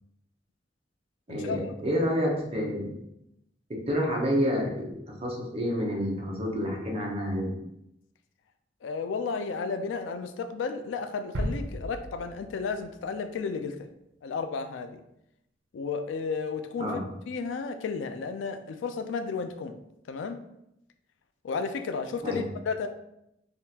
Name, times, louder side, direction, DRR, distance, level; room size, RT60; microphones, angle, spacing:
voice 1, 1.3-3.0 3.7-4.9 5.2-7.6 16.8-17.1 22.2-22.5, equal, 30° right, -1 dB, 0.6 m, -29 dB
voice 2, 8.8-13.8 14.2-15.0 15.7-17.0 17.3-19.8 20.1-20.4 21.4-22.9, left 5 dB, 90° left, 8 dB, 0.3 m, -33 dB
sound 1, 11.3-13.3 13.7-13.8, equal, 90° right, 0.5 m, -35 dB
3.6 x 2.4 x 2.7 m, 0.82 s
head